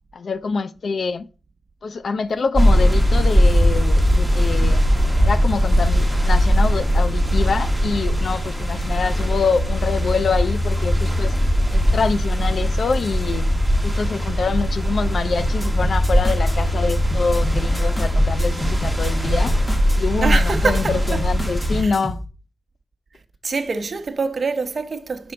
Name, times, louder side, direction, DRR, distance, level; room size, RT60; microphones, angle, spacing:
voice 1, 0.1-1.3 1.8-4.8 5.2-11.3 11.7-13.5 13.8-19.6 19.9-22.2, left 4 dB, 75° left, 0.4 m, -25 dB
sound 1, 2.5-21.8, equal, ahead, 1.5 m, -19 dB
sound 2, 15.4-16.6 16.9-20.0 20.3-22.3, left 1 dB, 25° left, 1.3 m, -31 dB
voice 2, 20.2-21.2 21.7-22.0 23.4-25.3, right 4 dB, 55° right, 0.8 m, -25 dB
6.0 x 4.3 x 5.1 m
wide cardioid pair, 100°, 0 cm